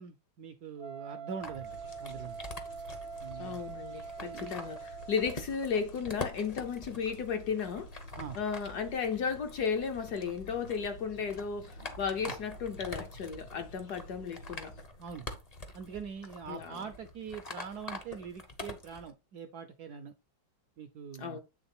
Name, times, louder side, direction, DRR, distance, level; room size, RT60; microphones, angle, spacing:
voice 1, 0.0-2.4 3.2-3.6 4.2-4.5 8.2-8.4 12.2-12.3 15.0-15.3 15.7-20.1 20.8-21.4, right 6 dB, 70° right, 0.9 m, -43 dB
Wind instrument woodwind instrument, 0.8-5.5, right 5 dB, 35° right, 0.4 m, -44 dB
sound 1, 1.4-19.1, left 2 dB, 35° left, 0.6 m, -46 dB
sound 2, 1.6-14.8, equal, 85° left, 3.0 m, -51 dB
voice 2, 3.4-7.9 8.4-14.7 16.5-16.9 21.2-21.4, left 6 dB, 60° left, 1.1 m, -34 dB
8.8 x 3.6 x 4.2 m
omnidirectional pair, 2.3 m